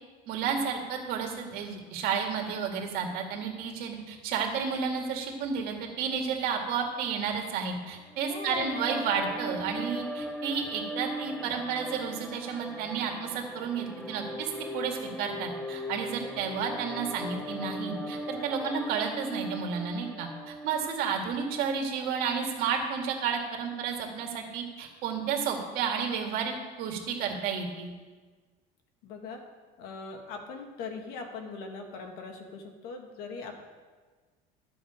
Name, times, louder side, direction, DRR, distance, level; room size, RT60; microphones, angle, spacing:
voice 1, 0.3-27.9, right 6 dB, 60° right, 2 dB, 2.1 m, -32 dB
sound 1, 8.1-21.4, equal, 5° left, 0.8 m, -38 dB
voice 2, 8.3-8.7 29.0-29.4 29.8-33.6, left 4 dB, 65° left, 3 dB, 1.8 m, -40 dB
12.5 x 7.8 x 5.1 m, 1.4 s
cardioid pair, 150°, 17 cm